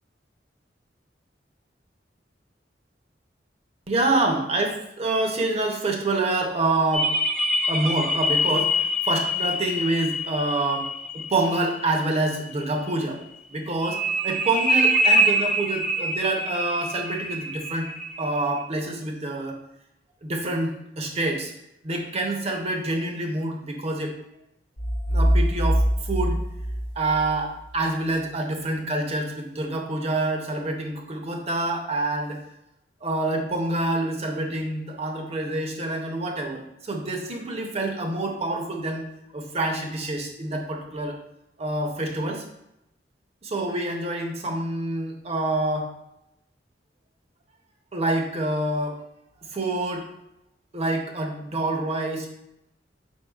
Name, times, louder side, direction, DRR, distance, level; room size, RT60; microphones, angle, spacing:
voice 1, 3.9-7.1 7.7-13.2 13.5-17.9 18.2-19.6 20.2-21.5 21.8-24.1 25.1-26.4 27.0-32.4 33.0-39.1 39.3-41.2 41.6-42.4 43.4-45.9 47.9-49.0 49.5-50.0 50.7-52.3, right 2 dB, 35° right, 2 dB, 0.6 m, -27 dB
sound 1, 6.9-12.5 13.8-18.6, equal, 5° left, 0.6 m, -25 dB
sound 2, 24.8-27.6, equal, 80° left, 0.7 m, -23 dB
4.6 x 4.4 x 2.3 m, 0.83 s
head